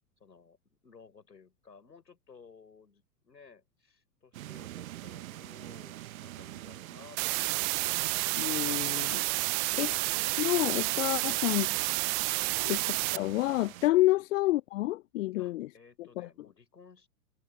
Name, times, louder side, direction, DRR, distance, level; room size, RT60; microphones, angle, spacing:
voice 1, 0.2-7.8 9.5-10.1 11.2-11.3 12.4-12.6 14.1-14.3 15.4-17.1, left 5 dB, 85° left, 6.1 m, -57 dB
sound 1, 4.3-13.9, right 15 dB, 55° right, 1.3 m, -46 dB
sound 2, 7.2-13.2, right 31 dB, 25° right, 0.5 m, -30 dB
voice 2, 8.3-9.2 9.7-9.9 10.4-11.7 12.7-12.8 13.1-15.7 16.2-16.3, left 17 dB, 50° left, 0.9 m, -28 dB
figure-of-eight pair, 105°, 48 cm